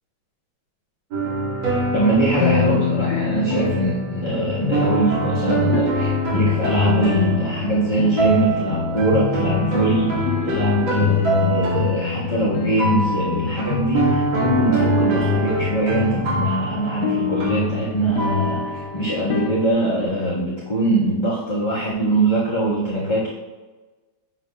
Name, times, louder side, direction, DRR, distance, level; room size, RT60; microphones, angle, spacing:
sound 1, 1.1-19.7, equal, 70° right, 2.6 m, -24 dB
voice 1, 1.9-23.3, right 2 dB, 25° left, -8 dB, 1.4 m, -22 dB
sound 2, 2.4-20.4, left 7 dB, 70° left, 1.2 m, -28 dB
8.2 x 7.0 x 2.3 m, 1.2 s
omnidirectional pair, 2.3 m